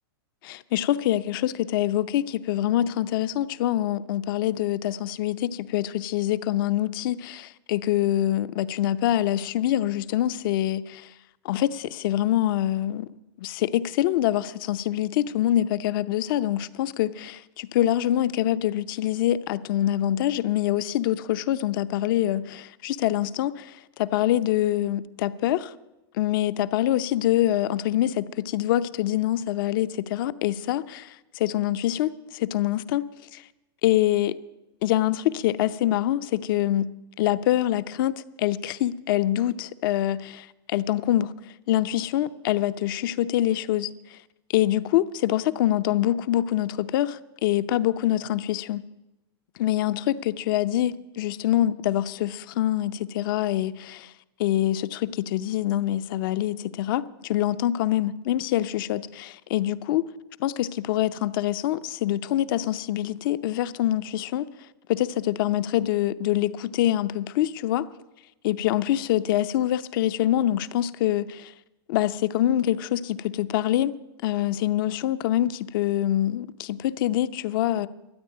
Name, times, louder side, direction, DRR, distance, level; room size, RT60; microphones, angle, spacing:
voice 1, 0.4-11.1 11.4-13.1 13.4-25.7 26.2-33.0 33.3-33.4 33.8-34.4 34.8-36.9 37.2-41.3 41.7-43.9 44.5-48.8 49.6-54.1 54.4-60.0 60.4-64.5 64.9-67.9 68.4-71.5 71.9-73.9 74.2-77.9, left 13 dB, 55° left, 0.7 m, -25 dB
13.5 x 9.7 x 9.1 m
supercardioid pair, 145°, 13 cm